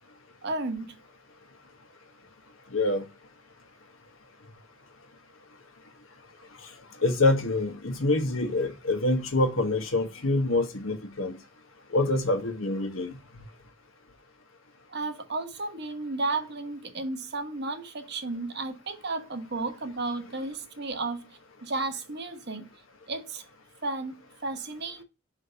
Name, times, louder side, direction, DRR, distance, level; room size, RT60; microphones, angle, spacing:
voice 1, 0.4-1.0 14.9-22.7 23.1-23.4 23.8-25.0, right 3 dB, 55° right, 1.1 m, -33 dB
voice 2, 2.7-3.0 7.0-11.3 11.9-13.2, left 2 dB, 85° left, 1.3 m, -26 dB
5.0 x 3.7 x 5.5 m
head